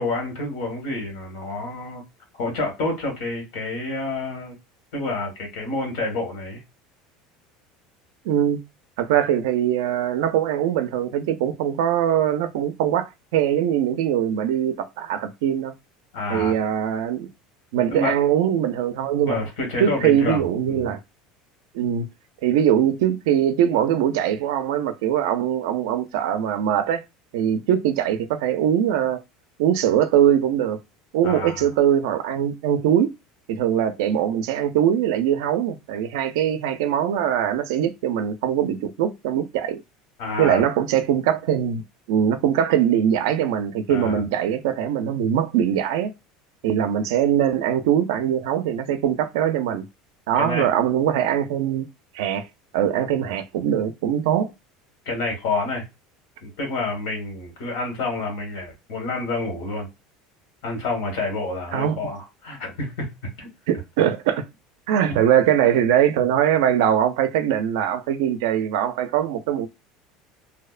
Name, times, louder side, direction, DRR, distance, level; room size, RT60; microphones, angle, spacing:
voice 1, 0.0-2.0 2.3-4.5 4.9-6.6 16.1-16.5 17.9-18.2 19.3-20.9 31.2-31.7 40.2-40.6 43.9-44.3 50.3-50.7 53.2-53.3 55.0-55.8 56.4-59.9 60.6-63.1 63.4-63.5 64.0-64.1 65.0-65.1, left 2 dB, 75° left, 1.3 m, -28 dB
voice 2, 8.3-8.6 9.0-15.7 16.3-17.3 17.7-19.4 19.8-21.0 21.7-22.1 22.4-27.0 27.3-29.2 29.6-30.8 31.1-33.1 33.5-39.8 40.4-41.8 42.1-46.1 46.6-49.8 50.3-51.9 52.1-52.5 52.7-54.5 61.7-62.0 63.7-64.4 64.9-69.7, right 10 dB, 85° right, 0.4 m, -22 dB
2.6 x 2.1 x 2.4 m
cardioid pair, 155°, 2 cm